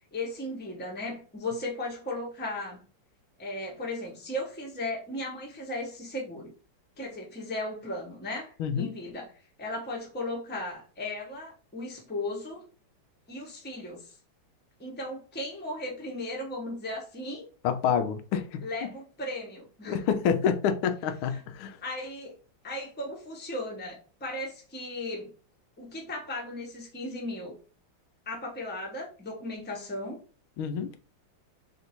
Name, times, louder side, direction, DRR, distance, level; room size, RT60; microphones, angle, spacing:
voice 1, 0.1-2.8 3.4-6.5 7.0-9.3 9.6-12.6 13.3-14.2 14.8-17.4 18.6-20.0 21.3-21.4 21.8-22.4 22.6-25.3 25.8-27.5 28.3-30.2, left 1 dB, 10° left, 0.6 m, -36 dB
voice 2, 8.6-8.9 17.6-18.6 19.8-21.8 30.6-30.9, left 7 dB, 90° left, 1.4 m, -28 dB
3.7 x 2.6 x 4.3 m
omnidirectional pair, 2.2 m